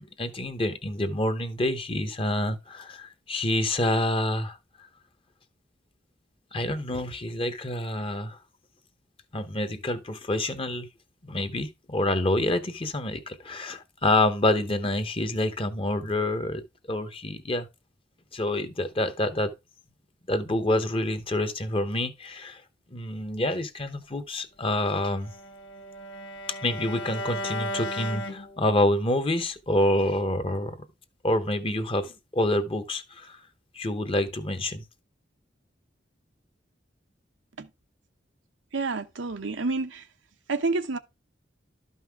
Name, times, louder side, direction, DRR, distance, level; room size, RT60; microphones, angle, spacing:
voice 1, 0.0-4.6 6.5-8.4 9.3-10.9 11.2-16.6 16.9-17.7 18.3-19.5 20.3-22.6 22.9-25.3 26.6-30.8 31.2-33.4 33.7-34.8, left 1 dB, 30° left, 0.9 m, -27 dB
Bowed string instrument, 24.8-29.0, left 1 dB, 80° left, 1.4 m, -36 dB
voice 2, 38.7-40.0 40.5-41.0, right 3 dB, 85° right, 0.9 m, -29 dB
12.0 x 5.5 x 3.5 m
head